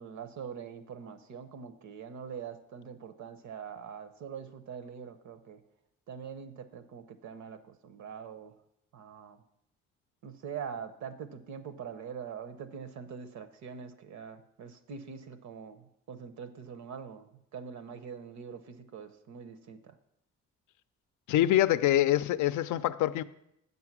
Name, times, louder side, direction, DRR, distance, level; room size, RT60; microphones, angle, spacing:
voice 1, 0.0-5.6 6.1-8.5 8.9-9.4 10.2-19.9, right 7 dB, 70° right, 0.8 m, -43 dB
voice 2, 21.3-23.2, left 13 dB, 75° left, 0.5 m, -25 dB
7.7 x 5.5 x 6.0 m
cardioid pair, 90°, 30 cm